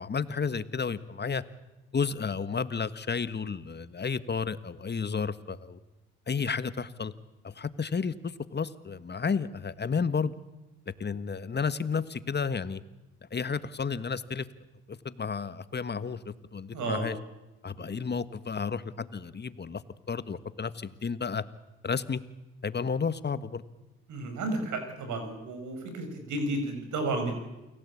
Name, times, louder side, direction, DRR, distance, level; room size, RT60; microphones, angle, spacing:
voice 1, 0.0-1.4 1.9-5.8 6.3-7.1 7.4-10.3 11.0-12.8 13.3-14.5 14.9-17.1 17.6-19.8 20.1-21.4 21.8-22.2 22.6-23.6, left 5 dB, 35° left, 14 dB, 1.6 m, -32 dB
voice 2, 16.7-17.1 17.8-18.1 24.1-27.3, right 2 dB, 70° right, 6 dB, 6.1 m, -32 dB
29.0 x 18.0 x 8.7 m, 1.1 s
supercardioid pair, 55°, 30 cm